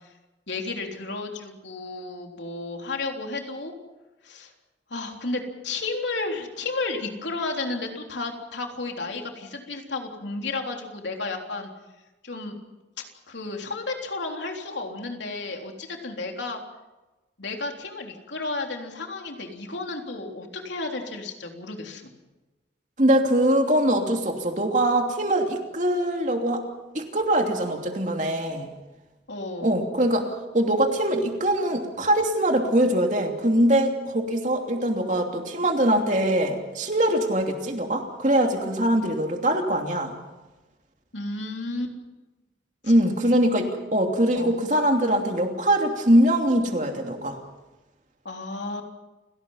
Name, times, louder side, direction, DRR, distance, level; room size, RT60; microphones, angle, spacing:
voice 1, 0.5-3.7 4.2-4.5 4.9-11.7 12.2-12.6 13.0-16.6 17.4-22.1 29.3-29.8 41.1-41.9 44.3-44.6 48.3-48.8, left 3 dB, 85° left, 2 dB, 3.5 m, -32 dB
voice 2, 23.0-26.6 26.9-28.7 29.6-40.1 42.8-47.4, right 1 dB, 40° right, 3 dB, 2.9 m, -22 dB
29.5 x 17.5 x 5.7 m, 1.1 s
head